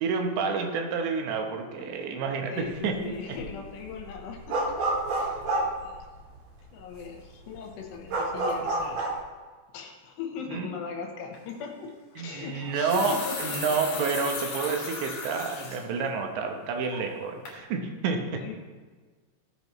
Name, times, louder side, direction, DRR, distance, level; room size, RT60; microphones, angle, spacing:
voice 1, 0.0-3.1 10.5-10.7 12.2-18.4, right 5 dB, 80° right, 3 dB, 3.3 m, -29 dB
voice 2, 2.5-4.6 5.2-6.1 6.7-9.1 9.7-13.5 18.4-18.5, left 6 dB, 75° left, 2 dB, 3.1 m, -39 dB
sound 1, 2.6-3.0 3.3-6.5 7.0-7.1 7.3-9.2, right 2 dB, 55° right, 4.0 m, -29 dB
sound 2, 11.3-11.5 12.5-15.8 16.3-16.4 16.9-17.2 17.5-17.6, left 4 dB, 50° left, 2.1 m, -36 dB
17.5 x 8.8 x 3.2 m, 1.4 s
omnidirectional pair, 5.2 m